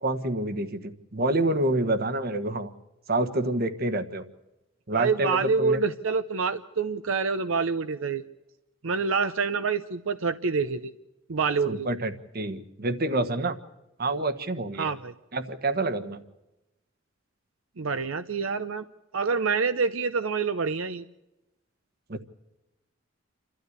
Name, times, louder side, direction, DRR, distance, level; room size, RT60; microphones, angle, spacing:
voice 1, 0.0-2.7 3.1-4.2 4.9-5.8 11.7-13.6 14.0-14.9 15.3-16.2 22.1-22.2, right 2 dB, 50° right, 11 dB, 1.4 m, -27 dB
voice 2, 4.9-8.2 8.8-10.9 11.3-11.9 14.8-15.1 17.8-18.8 19.1-21.1, right 5 dB, 80° right, 10 dB, 0.7 m, -27 dB
28.0 x 13.0 x 8.1 m, 0.97 s
head